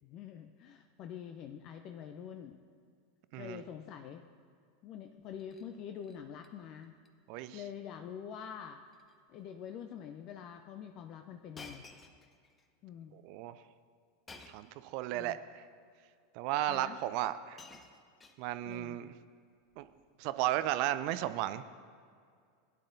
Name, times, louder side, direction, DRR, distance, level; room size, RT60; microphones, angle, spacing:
voice 1, 0.0-2.6 3.4-4.3 4.8-6.9 7.5-8.8 9.3-11.9 12.8-13.1 15.1-15.4 16.7-17.0 18.6-19.0, left 8 dB, 45° left, 7 dB, 0.5 m, -46 dB
Shatter, 5.2-5.7 6.0-6.5 6.8-7.1 7.4-7.5 8.3-8.6 8.9-9.2 9.9-10.0 11.6-12.7 14.3-14.8 15.8-15.9 16.9-17.0 17.3-18.8 19.7-20.0, left 3 dB, 20° left, 0.8 m, -54 dB
voice 2, 7.3-7.6 13.1-13.5 14.5-15.6 16.3-17.6 18.4-19.1 19.8-19.9 20.2-21.7, right 13 dB, 50° right, 13 dB, 0.4 m, -34 dB
16.5 x 9.8 x 2.7 m, 2.2 s
figure-of-eight pair, 85°, 0 cm